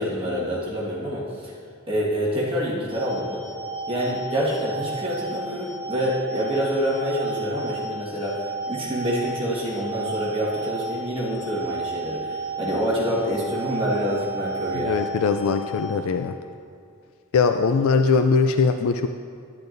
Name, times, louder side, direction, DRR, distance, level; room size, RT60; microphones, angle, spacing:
voice 1, 0.0-1.5 1.9-3.4 3.9-15.0, equal, 25° right, -6 dB, 1.6 m, -27 dB
sound 1, 2.9-15.9, right 2 dB, 30° left, 1.7 m, -33 dB
voice 2, 14.7-16.3 17.3-19.1, left 5 dB, 70° left, 7 dB, 0.3 m, -21 dB
10.5 x 10.5 x 2.6 m, 2.3 s
head